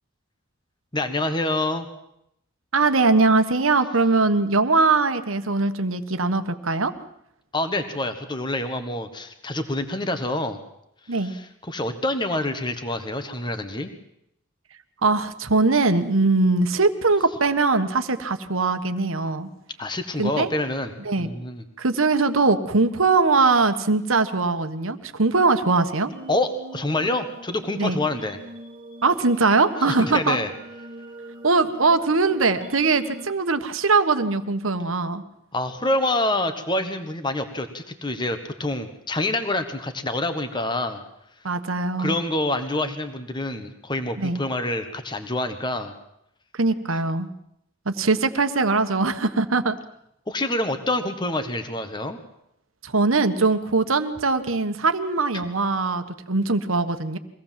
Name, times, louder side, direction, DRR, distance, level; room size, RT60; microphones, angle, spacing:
voice 1, 0.9-1.9 7.5-10.6 11.1-13.9 19.8-21.6 26.3-28.4 29.8-30.5 35.5-41.0 42.0-45.9 50.3-52.2 55.3-55.4, left 2 dB, 20° left, 8 dB, 1.5 m, -27 dB
voice 2, 2.7-6.9 11.1-11.3 15.0-19.5 20.2-20.5 21.0-21.3 21.8-26.1 27.8-28.0 29.0-30.4 31.4-35.2 41.4-42.1 44.2-44.4 46.5-47.3 47.8-49.8 52.8-57.2, right 3 dB, 80° right, 10 dB, 1.3 m, -21 dB
sound 1, 26.1-33.3, right 2 dB, 25° right, 2.0 m, -43 dB
23.5 x 17.0 x 7.5 m, 0.78 s
head